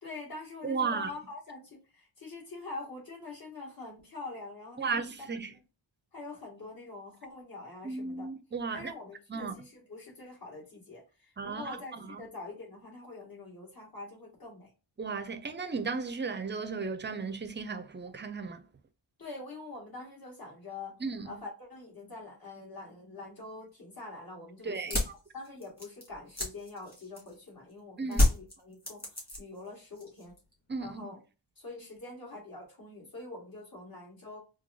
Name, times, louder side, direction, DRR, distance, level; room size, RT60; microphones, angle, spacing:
voice 1, 0.0-4.9 6.1-8.3 8.7-14.7 19.2-21.0 21.2-25.0 25.3-30.3 30.8-31.2 31.6-34.4, left 3 dB, 50° left, 2.1 m, -45 dB
voice 2, 0.6-1.1 4.8-5.5 7.8-8.9 9.3-9.5 11.4-12.3 15.0-18.6 21.0-21.4 24.6-25.0 28.0-28.3 30.7-31.1, right 4 dB, 25° right, 0.4 m, -35 dB
sound 1, 24.7-27.5 28.1-29.7 29.9-30.5, left 1 dB, 20° left, 2.1 m, -29 dB
4.5 x 2.3 x 2.6 m
wide cardioid pair, 120°, 45 cm